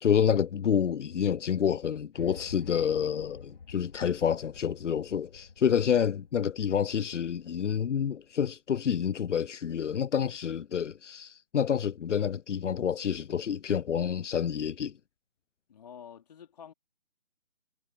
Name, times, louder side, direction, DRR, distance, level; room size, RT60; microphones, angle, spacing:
voice 1, 0.0-14.9, left 8 dB, 80° left, 0.5 m, -28 dB
sound 1, 2.1-8.3, left 5 dB, 50° left, 3.4 m, -50 dB
voice 2, 15.7-16.7, left 8 dB, 35° left, 3.5 m, -48 dB
figure-of-eight pair, 155°, 36 cm